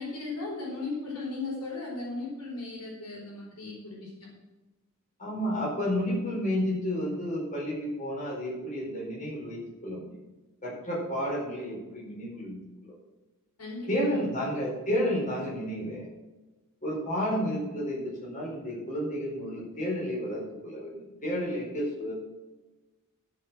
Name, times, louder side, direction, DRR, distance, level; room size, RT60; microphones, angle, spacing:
voice 1, 0.0-4.3 13.6-14.2, left 3 dB, 75° left, -3 dB, 4.5 m, -37 dB
voice 2, 5.2-10.1 10.6-12.9 13.9-16.1 16.8-22.1, equal, 35° left, -4 dB, 4.6 m, -31 dB
14.0 x 6.0 x 6.3 m, 1.1 s
head